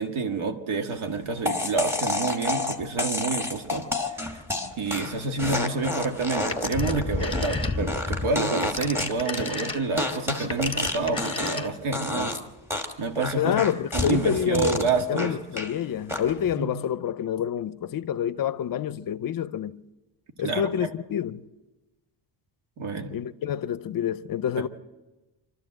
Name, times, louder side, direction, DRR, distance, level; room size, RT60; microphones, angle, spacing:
voice 1, 0.0-3.9 4.3-4.4 4.8-12.4 13.0-13.6 13.9-15.3 16.6-16.7 20.4-20.9 22.8-23.2 24.6-24.7, right 4 dB, 80° right, 1.9 m, -28 dB
sound 1, 1.5-11.7 11.9-12.4 12.7-15.7 16.1-16.5, left 2 dB, 5° right, 1.3 m, -29 dB
Telephone, 6.5-8.1 8.4-12.0, left 3 dB, 10° left, 0.9 m, -35 dB
voice 2, 13.4-19.8 20.4-21.5 23.1-24.7, left 9 dB, 45° left, 0.5 m, -28 dB
26.5 x 13.0 x 7.7 m
cardioid pair, 175°, 48 cm